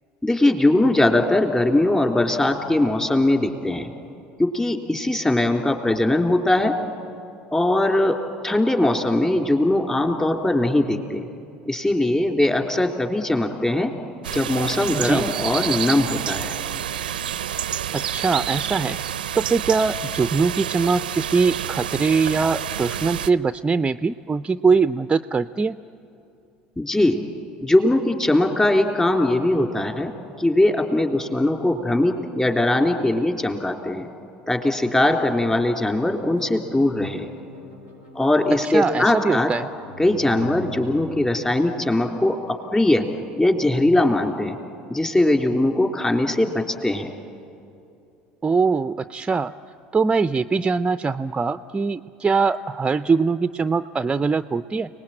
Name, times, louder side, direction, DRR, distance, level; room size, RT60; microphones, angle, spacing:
voice 1, 0.2-3.9 4.4-6.8 7.5-11.3 11.6-13.9 14.3-16.5 26.8-27.2 27.6-30.1 30.4-34.1 34.5-37.3 38.1-39.5 40.0-43.1 43.4-44.6 44.9-47.1, left 1 dB, 15° left, 3 dB, 3.3 m, -20 dB
sound 1, 14.2-23.3, right 10 dB, 85° right, 0.5 m, -28 dB
voice 2, 14.9-15.3 17.9-19.0 19.3-25.8 38.6-39.7 48.4-49.5 49.9-54.9, right 4 dB, 20° right, 12 dB, 0.5 m, -22 dB
sound 2, 35.8-41.3, right 1 dB, 80° left, 7.3 m, -42 dB
30.0 x 19.5 x 9.0 m, 2.7 s
hypercardioid pair, 70°, 5 cm